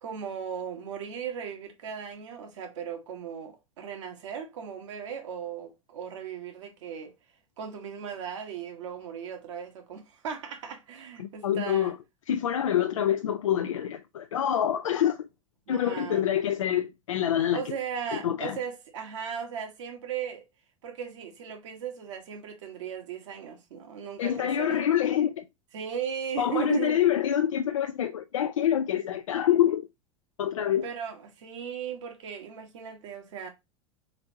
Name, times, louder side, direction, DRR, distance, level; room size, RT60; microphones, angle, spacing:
voice 1, 0.0-7.1 7.6-11.9 15.7-16.3 17.5-20.4 20.8-24.8 25.7-27.0 30.8-33.5, right 7 dB, 65° right, 1.4 m, -37 dB
voice 2, 11.2-12.0 12.3-15.2 15.7-17.6 18.1-18.6 24.2-25.4 26.4-29.8 30.4-30.9, left 10 dB, 70° left, 0.4 m, -26 dB
4.1 x 3.9 x 2.8 m
figure-of-eight pair, 85°, 17 cm